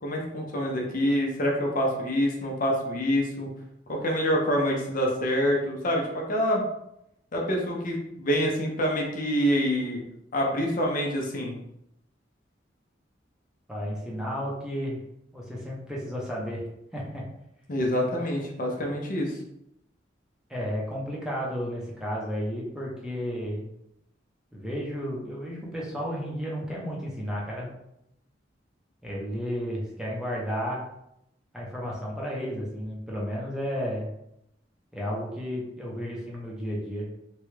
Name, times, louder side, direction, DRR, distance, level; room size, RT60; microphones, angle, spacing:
voice 1, 0.0-3.5 3.9-6.6 7.3-10.0 10.3-11.5 17.7-19.3, equal, 50° left, -1 dB, 0.6 m, -26 dB
voice 2, 13.7-15.0 15.3-16.6 16.9-17.2 20.5-23.7 24.5-27.7 29.0-30.8 31.5-34.1 34.9-37.1, equal, 5° right, -4 dB, 0.6 m, -32 dB
3.0 x 2.3 x 3.1 m, 0.79 s
head